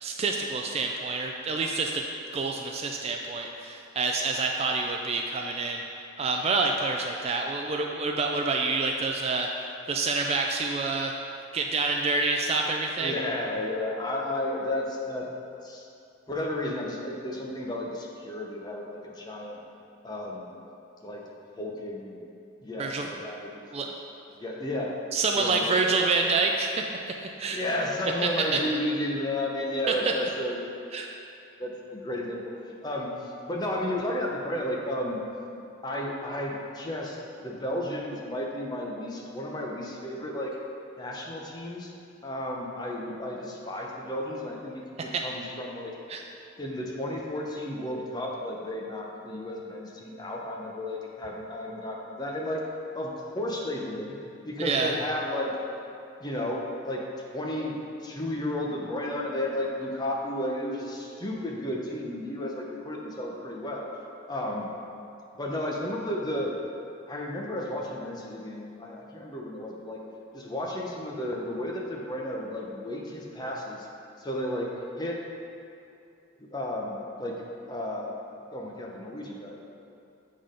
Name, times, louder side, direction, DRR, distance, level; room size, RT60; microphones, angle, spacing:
voice 1, 0.0-2.0 2.3-5.8 6.2-9.5 9.9-11.1 11.5-13.1 22.8-23.1 23.7-23.9 25.1-26.8 27.2-27.6 28.5-28.6 29.9-30.0 30.9-31.1 45.1-45.2 46.1-46.2 54.6-54.9, right 3 dB, 30° right, 2 dB, 0.3 m, -27 dB
voice 2, 13.0-15.2 15.6-15.9 16.3-19.6 20.0-20.5 21.0-21.2 21.6-22.2 22.6-23.9 24.4-25.0 25.3-26.1 27.5-30.8 31.6-32.5 32.8-35.2 35.8-40.5 41.0-41.9 42.2-45.9 46.6-52.6 52.9-54.1 54.4-55.6 56.2-57.0 57.3-63.9 64.3-64.7 65.3-66.5 67.1-70.0 70.3-73.9 74.2-74.7 75.0-75.2 76.4-77.4 77.7-78.2 78.5-79.6, left 1 dB, 20° left, -2 dB, 0.7 m, -33 dB
7.7 x 3.7 x 5.0 m, 2.6 s
head